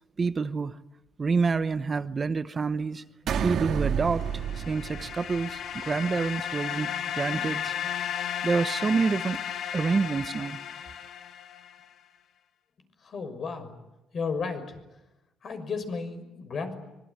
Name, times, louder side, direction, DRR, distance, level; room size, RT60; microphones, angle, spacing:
voice 1, 0.2-0.8 1.2-4.3 4.6-7.7 8.4-9.4 9.7-10.6, right 4 dB, 30° right, 0.9 m, -28 dB
sound 1, 3.3-5.8, right 8 dB, 65° right, 2.2 m, -30 dB
sound 2, 4.1-11.8, left 9 dB, 65° left, 1.7 m, -34 dB
voice 2, 13.0-13.7 14.1-14.8 15.4-16.7, left 5 dB, 50° left, 6.3 m, -33 dB
25.5 x 23.5 x 9.8 m
cardioid pair, 115°, 0 cm